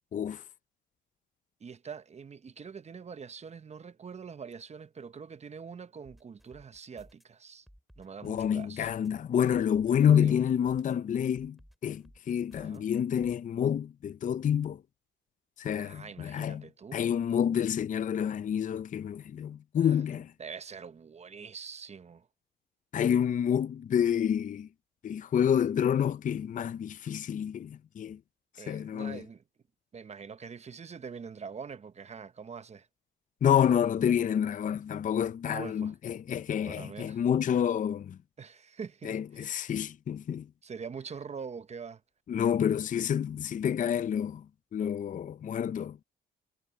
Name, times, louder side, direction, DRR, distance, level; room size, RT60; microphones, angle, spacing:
voice 1, 0.1-0.4 8.2-14.8 15.6-20.3 22.9-24.7 25.0-28.2 28.7-29.2 33.4-38.2 39.0-40.5 42.3-44.5 44.7-46.0, left 9 dB, 40° left, 0.5 m, -28 dB
voice 2, 1.6-7.7 8.0-8.9 9.9-10.4 12.6-12.9 15.7-17.0 19.8-20.0 20.4-22.3 28.6-29.4 29.9-32.9 35.4-35.9 36.6-37.2 38.4-39.8 40.6-42.0, right 6 dB, 35° right, 0.8 m, -44 dB
sound 1, 6.1-7.2 7.7-9.1 9.5-10.9 11.4-12.8 13.2-13.4, equal, ahead, 3.6 m, -57 dB
cardioid pair, 90°, 20 cm